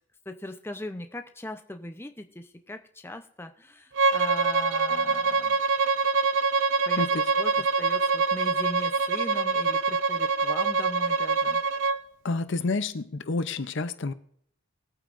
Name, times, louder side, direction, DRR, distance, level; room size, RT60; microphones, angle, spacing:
voice 1, 0.3-5.6 6.9-7.1 7.4-11.6, left 1 dB, 10° left, 6 dB, 0.6 m, -39 dB
Bowed string instrument, 3.9-12.0, right 4 dB, 55° right, 0.4 m, -25 dB
voice 2, 7.0-7.3 12.2-14.1, left 3 dB, 55° left, 12 dB, 0.6 m, -29 dB
21.5 x 8.9 x 2.5 m, 0.67 s
head